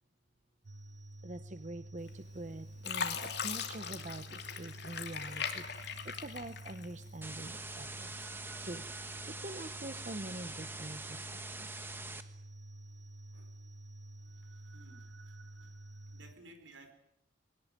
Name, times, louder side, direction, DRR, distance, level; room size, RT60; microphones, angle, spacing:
sound 1, 0.6-16.3, right 1 dB, 65° right, 1.0 m, -50 dB
voice 1, 1.2-8.2 8.6-11.9, right 1 dB, 40° right, 11 dB, 0.8 m, -45 dB
Fill (with liquid), 2.1-2.5 2.8-7.2 7.7-8.5 9.0-9.2, left 6 dB, 55° left, 2.7 m, -39 dB
sound 2, 7.2-12.2, right 3 dB, 10° right, 1.3 m, -44 dB
voice 2, 14.3-15.7 16.1-16.9, right 2 dB, 80° right, 8 dB, 4.5 m, -59 dB
22.0 x 18.5 x 9.3 m, 0.78 s
head